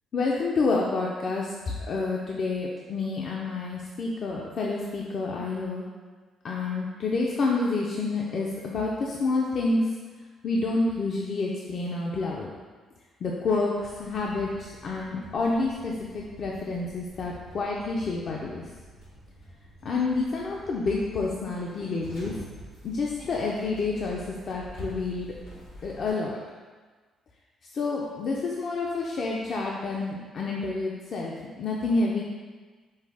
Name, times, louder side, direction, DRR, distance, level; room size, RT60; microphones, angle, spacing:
voice 1, 0.1-1.5 1.9-5.9 6.4-9.8 10.4-12.5 13.2-18.6 19.8-22.3 22.8-24.2 24.5-25.3 25.8-26.4 27.7-32.2, left 3 dB, 55° left, -2 dB, 0.5 m, -28 dB
sound 1, 13.7-26.1, equal, 90° left, 1.3 m, -47 dB
5.4 x 2.0 x 4.7 m, 1.4 s
cardioid pair, 90°, 0 cm